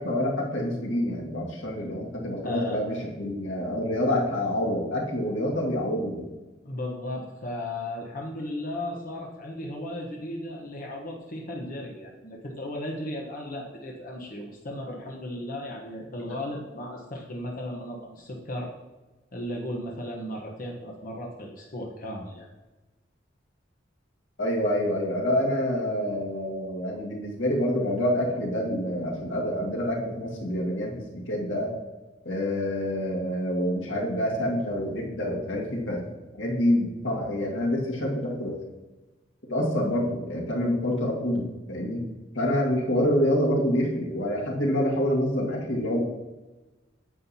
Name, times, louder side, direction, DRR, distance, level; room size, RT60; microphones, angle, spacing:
voice 1, 0.0-6.3 24.4-31.7 32.3-36.0 36.3-38.6 39.5-42.0 42.3-46.0, left 1 dB, 85° left, -2 dB, 1.9 m, -27 dB
voice 2, 2.4-2.8 6.6-18.7 19.3-22.5, left 1 dB, 50° left, -1 dB, 1.0 m, -35 dB
9.4 x 7.7 x 2.8 m, 1.1 s
head